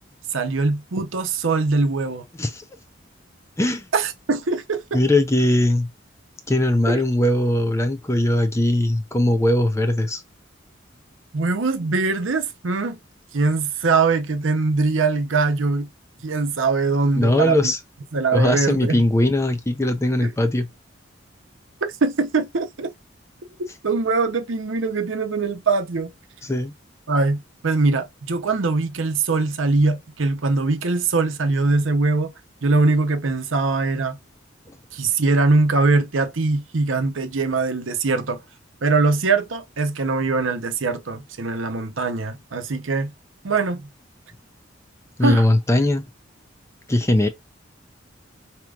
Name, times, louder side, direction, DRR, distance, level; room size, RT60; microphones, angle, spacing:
voice 1, 0.3-2.2 3.9-4.8 6.9-7.0 11.3-13.0 13.3-15.9 16.2-17.7 18.1-19.0 20.2-20.3 22.0-22.9 23.8-26.1 27.1-32.3 32.6-34.2 34.9-38.4 38.8-43.1 43.4-43.9 45.2-45.5, right 3 dB, 90° right, 0.8 m, -22 dB
voice 2, 4.9-5.9 6.5-10.2 17.2-17.8 18.3-20.7 26.4-26.7 45.2-46.1 46.9-47.3, left 1 dB, 15° left, 0.5 m, -20 dB
4.8 x 2.9 x 2.4 m
head